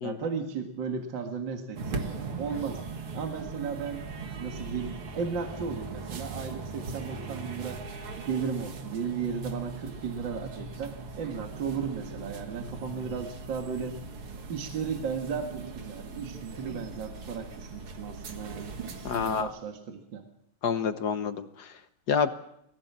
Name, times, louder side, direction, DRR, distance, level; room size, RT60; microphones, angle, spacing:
voice 1, 0.0-2.1 2.4-2.8 3.1-4.0 4.3-7.8 8.2-14.0 14.5-20.2, right 6 dB, 60° right, 4 dB, 2.5 m, -35 dB
sound 1, 1.8-19.4, right 4 dB, 85° right, 2.8 m, -39 dB
voice 2, 19.0-19.5 20.6-21.7 22.1-22.3, left 6 dB, 55° left, 10 dB, 1.4 m, -28 dB
22.0 x 16.0 x 7.4 m, 0.77 s
omnidirectional pair, 2.4 m